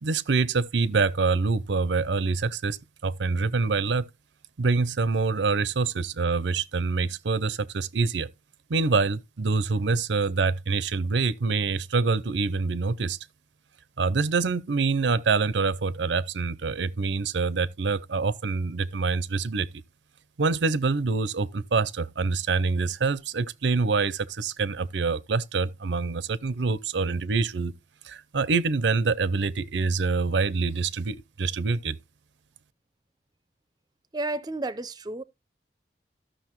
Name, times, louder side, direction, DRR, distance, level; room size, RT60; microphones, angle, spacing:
voice 1, 0.0-2.8 3.0-4.1 4.6-8.3 8.7-13.2 14.0-19.7 20.4-27.7 28.0-32.0, right 4 dB, 75° right, 0.6 m, -25 dB
voice 2, 34.1-35.2, right 2 dB, 25° right, 0.6 m, -31 dB
13.5 x 6.3 x 3.0 m
head